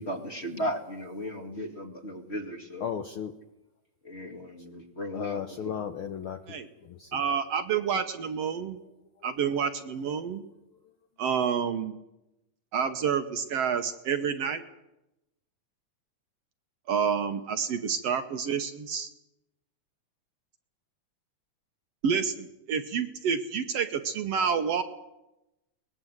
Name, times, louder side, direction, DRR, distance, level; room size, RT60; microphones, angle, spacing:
voice 1, 0.0-2.9 4.0-5.8, equal, 25° left, 4 dB, 1.9 m, -36 dB
voice 2, 2.8-3.3 5.1-7.2 8.7-8.9 9.2-9.4, left 8 dB, 60° left, 7 dB, 1.4 m, -36 dB
voice 3, 7.1-8.8 9.2-10.4 11.2-12.0 12.7-14.6 16.9-19.1 22.0-24.8, right 7 dB, 65° right, 8 dB, 1.9 m, -28 dB
22.5 x 20.0 x 8.0 m, 0.92 s
omnidirectional pair, 3.5 m